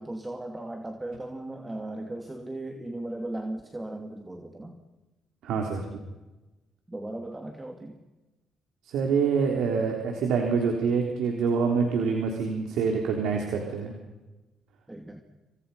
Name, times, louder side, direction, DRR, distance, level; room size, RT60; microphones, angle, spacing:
voice 1, 0.0-4.8 6.9-8.0 14.9-15.2, right 1 dB, 15° right, 4 dB, 2.7 m, -37 dB
voice 2, 5.4-5.8 8.9-13.9, right 5 dB, 85° right, 2 dB, 3.6 m, -26 dB
28.5 x 26.0 x 5.7 m, 1.1 s
cardioid pair, 90°, 0 cm